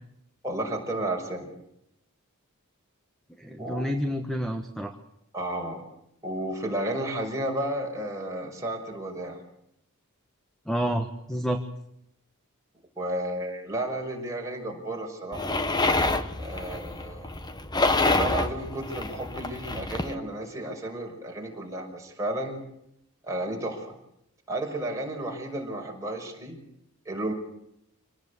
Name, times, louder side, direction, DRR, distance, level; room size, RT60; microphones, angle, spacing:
voice 1, 0.4-1.5 3.6-3.9 5.3-5.8 6.2-9.4 13.0-15.5 16.4-17.3 18.1-22.6 23.2-23.9 24.5-26.6 27.1-27.3, right 1 dB, 15° right, 0 dB, 5.6 m, -32 dB
voice 2, 3.4-4.9 10.7-11.6, equal, ahead, 5 dB, 1.3 m, -29 dB
sound 1, 15.3-20.1, left 2 dB, 20° left, 1.3 m, -27 dB
27.0 x 18.5 x 8.3 m, 0.77 s
head